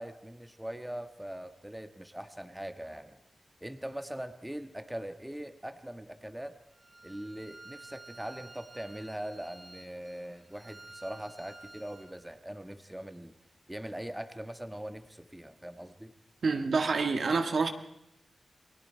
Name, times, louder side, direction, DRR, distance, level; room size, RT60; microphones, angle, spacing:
voice 1, 0.0-3.2 3.6-6.6 7.0-13.3 13.7-16.1, right 1 dB, 10° right, 8 dB, 1.4 m, -41 dB
Bowed string instrument, 6.7-12.1, right 2 dB, 45° right, 3.8 m, -52 dB
voice 2, 16.4-17.7, right 4 dB, 75° right, 6 dB, 1.6 m, -27 dB
29.0 x 20.0 x 4.5 m, 0.79 s
cardioid pair, 60°, 0 cm